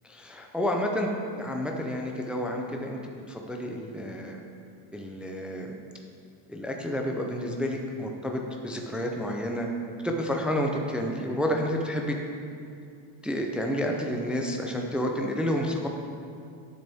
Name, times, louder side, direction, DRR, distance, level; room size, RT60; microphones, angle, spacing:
voice 1, 0.1-3.0 3.3-4.4 4.9-5.7 6.5-9.7 10.0-12.2 13.2-15.9, equal, ahead, 1 dB, 0.3 m, -30 dB
12.0 x 6.8 x 3.4 m, 2.4 s
cardioid pair, 135°, 49 cm